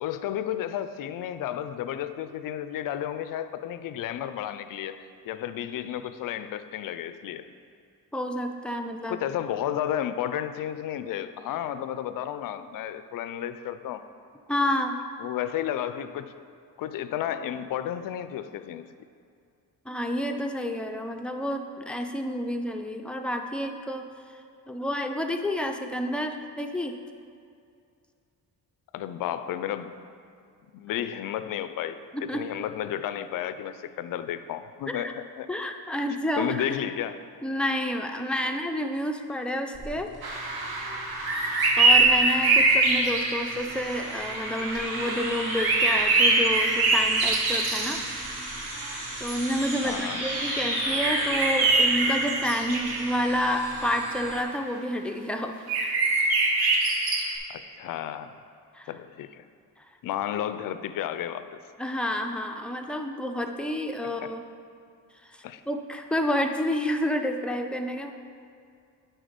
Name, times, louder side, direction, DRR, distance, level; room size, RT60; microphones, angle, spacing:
voice 1, 0.0-7.5 9.1-14.1 15.2-16.3 16.8-18.9 28.9-29.9 30.7-35.5 36.4-37.2 49.8-50.2 57.5-58.3 58.9-59.4 60.0-61.5 64.2-64.3 65.4-65.6, left 10 dB, 65° left, 12 dB, 0.5 m, -32 dB
voice 2, 8.1-9.2 14.5-15.0 19.9-27.0 32.1-32.5 34.9-35.1 35.5-36.6 37.4-40.1 41.8-48.0 49.2-55.7 58.7-58.9 59.8-59.9 61.8-64.4 65.2-68.1, left 1 dB, 5° left, 4 dB, 0.4 m, -29 dB
sound 1, 39.7-54.4, right 1 dB, 55° right, 1.6 m, -35 dB
sound 2, 40.2-49.2 49.5-49.6 49.9-50.1 51.0-53.3 55.7-57.4, right 3 dB, 75° right, 1.1 m, -24 dB
9.1 x 3.9 x 5.1 m, 2.4 s
cardioid pair, 95°, 37 cm